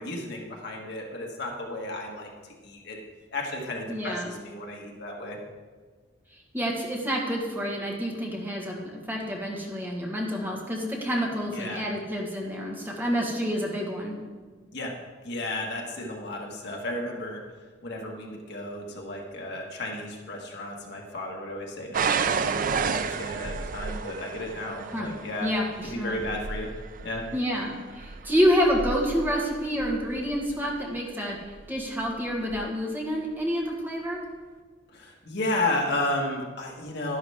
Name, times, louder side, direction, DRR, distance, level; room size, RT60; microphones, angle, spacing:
voice 1, 0.0-3.0 3.3-5.4 11.5-11.8 14.7-14.9 15.2-17.4 17.8-25.5 25.8-26.7 27.0-27.2 34.9-37.2, left 1 dB, 60° left, -1 dB, 1.8 m, -33 dB
voice 2, 3.9-4.3 6.5-14.1 24.9-25.1 25.4-26.2 27.3-31.4 31.7-34.2, equal, 10° right, -2 dB, 1.6 m, -28 dB
sound 1, 21.9-30.7 31.5-31.9 32.5-32.6, right 5 dB, 45° right, 0.4 m, -32 dB
11.5 x 11.0 x 3.6 m, 1.5 s
head